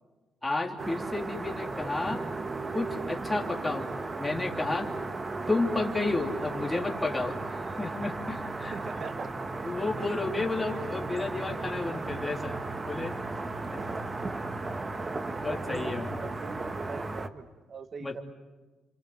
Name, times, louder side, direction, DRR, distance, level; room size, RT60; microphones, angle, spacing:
voice 1, 0.4-2.2 2.7-3.9 4.2-4.9 5.5-8.7 9.6-12.6 12.8-13.2 13.7-13.8 15.4-16.1 18.0-18.2, left 3 dB, 15° left, 0 dB, 3.1 m, -31 dB
sound 1, 0.8-17.3, right 3 dB, 30° right, 1.4 m, -35 dB
voice 2, 8.7-9.3 10.0-10.5 13.8-14.0 15.3-18.2, right 5 dB, 45° right, 10 dB, 1.6 m, -43 dB
28.0 x 26.5 x 8.0 m, 1.2 s
cardioid pair, 90°, 0 cm